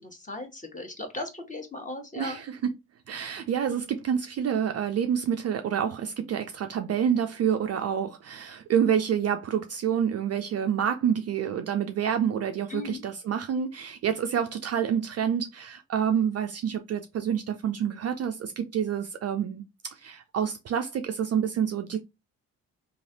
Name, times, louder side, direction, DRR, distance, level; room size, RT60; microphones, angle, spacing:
voice 1, 0.0-2.4 12.7-13.0, left 2 dB, 20° left, 1.2 m, -37 dB
voice 2, 2.2-2.7 3.1-19.6 19.9-22.0, right 8 dB, 40° right, 0.4 m, -28 dB
3.1 x 2.5 x 2.7 m
hypercardioid pair, 40°, 40 cm